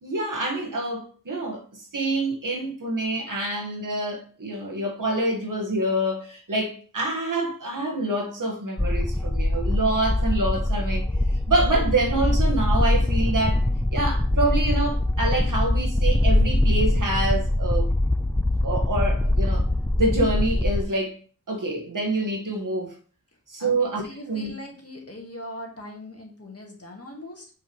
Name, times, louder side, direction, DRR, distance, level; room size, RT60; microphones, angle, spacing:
voice 1, 0.0-11.1 11.5-13.6 13.9-17.9 18.6-19.6 20.0-21.2 21.5-23.0 23.5-24.0 24.3-24.5, right 2 dB, 65° right, 1.8 m, -26 dB
sound 1, 8.8-20.8, left 1 dB, 10° left, 0.3 m, -23 dB
voice 2, 23.6-27.5, left 1 dB, 45° left, 1.9 m, -40 dB
6.9 x 5.7 x 3.2 m
wide cardioid pair, 75°, 34 cm